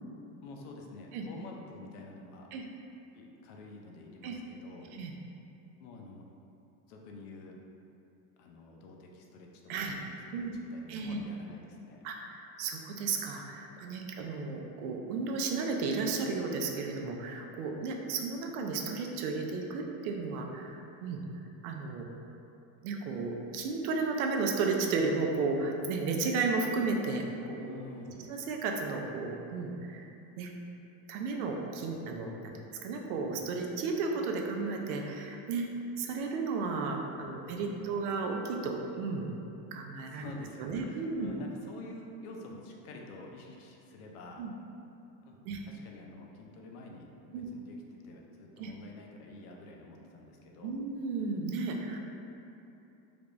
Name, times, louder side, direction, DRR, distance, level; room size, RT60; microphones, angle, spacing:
voice 1, 0.4-2.5 3.1-4.9 5.8-6.3 6.9-7.6 8.4-10.0 10.3-12.0 27.6-28.3 37.2-37.8 40.1-44.5 45.2-45.4 45.7-50.8 51.9-52.0, left 2 dB, 85° left, 0 dB, 0.7 m, -48 dB
voice 2, 10.9-11.2 12.0-21.2 21.6-22.1 22.8-27.8 28.3-30.1 30.4-30.5 31.1-32.5 32.8-35.7 36.0-39.3 39.7-40.3 40.6-41.3 44.4-44.5 45.4-45.6 47.3-47.5 48.6-48.7 50.6-52.0, right 4 dB, 85° right, 2 dB, 0.6 m, -33 dB
3.4 x 3.3 x 2.5 m, 2.9 s
cardioid pair, 165°, 43 cm